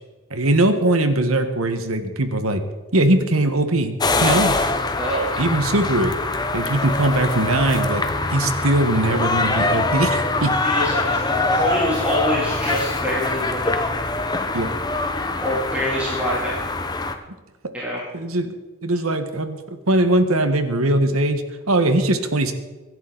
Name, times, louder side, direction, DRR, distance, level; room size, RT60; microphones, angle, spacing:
voice 1, 0.3-2.6 2.9-3.9 4.2-4.5 5.4-6.1 6.5-8.0 8.3-10.5 14.5-14.7 18.1-18.5 18.8-22.5, right 1 dB, 90° right, 8 dB, 1.6 m, -20 dB
sound 1, 4.0-17.1, left 2 dB, 20° left, 0.9 m, -23 dB
voice 2, 4.9-5.3 10.6-13.8 15.4-16.5 17.7-18.0, equal, 5° right, -8 dB, 3.3 m, -25 dB
24.0 x 11.0 x 4.1 m, 1.2 s
head